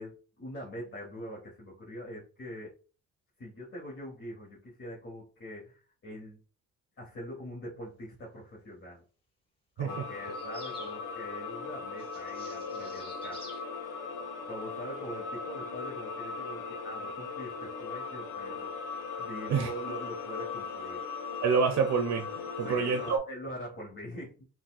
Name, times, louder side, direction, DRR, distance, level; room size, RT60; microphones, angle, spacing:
voice 1, 0.0-2.7 3.4-6.4 7.0-9.0 9.8-13.5 14.5-21.0 22.6-24.4, equal, 45° left, 1.2 m, -43 dB
sound 1, 9.9-23.2, left 4 dB, 90° left, 0.6 m, -39 dB
sound 2, 10.3-11.0 12.0-13.6, left 2 dB, 20° left, 1.4 m, -50 dB
voice 2, 21.4-23.2, right 5 dB, 65° right, 0.6 m, -27 dB
4.0 x 2.2 x 2.3 m
cardioid pair, 90°, 30 cm